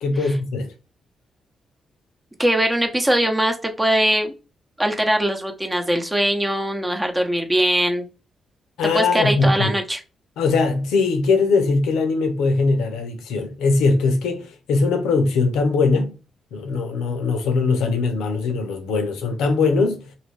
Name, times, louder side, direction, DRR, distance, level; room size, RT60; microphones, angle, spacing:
voice 1, 0.0-0.7 8.8-9.7 10.4-16.2 16.5-20.1, left 4 dB, 85° left, 0.6 m, -21 dB
voice 2, 2.4-4.3 4.8-8.1 8.9-10.0, right 1 dB, 15° right, 0.8 m, -21 dB
2.6 x 2.4 x 3.2 m
supercardioid pair, 55°, 0 cm